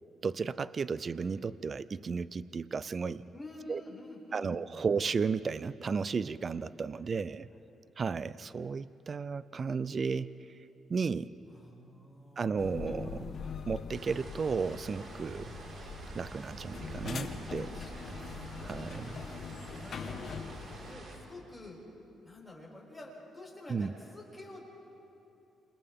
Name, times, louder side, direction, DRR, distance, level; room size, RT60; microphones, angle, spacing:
voice 1, 0.2-3.2 3.7-3.8 4.3-7.5 8.0-10.3 10.9-11.3 12.4-13.3 13.7-15.5 16.1-17.8 18.6-19.2 23.7-23.9, right 5 dB, 40° right, 16 dB, 0.5 m, -34 dB
voice 2, 3.3-4.9 6.9-7.1 7.5-7.6 11.5-12.8 15.3-15.5 17.6-18.3 19.7-20.2 20.8-21.8 22.2-24.7, left 2 dB, 5° left, -3 dB, 6.2 m, -49 dB
sound 1, 12.6-20.9, left 5 dB, 55° left, 1.5 m, -43 dB
sound 2, 13.9-21.2, right 2 dB, 55° right, 4.9 m, -47 dB
29.0 x 27.5 x 3.7 m, 2.9 s
cardioid pair, 90°, 0 cm